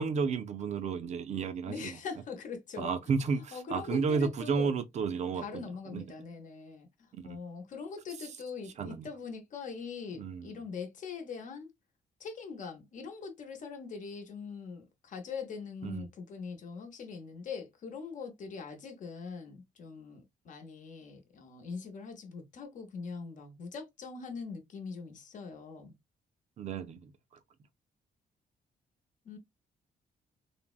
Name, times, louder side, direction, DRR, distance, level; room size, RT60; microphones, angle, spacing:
voice 1, 0.0-2.0 2.8-6.0 7.1-7.4 8.8-9.1 10.2-10.6 15.8-16.0 26.6-27.1, right 5 dB, 45° right, 0.4 m, -32 dB
voice 2, 1.7-3.0 3.5-4.7 5.3-11.7 12.2-25.9 29.2-29.4, left 5 dB, 55° left, 0.8 m, -42 dB
3.3 x 2.1 x 2.3 m
cardioid pair, 150°, 16 cm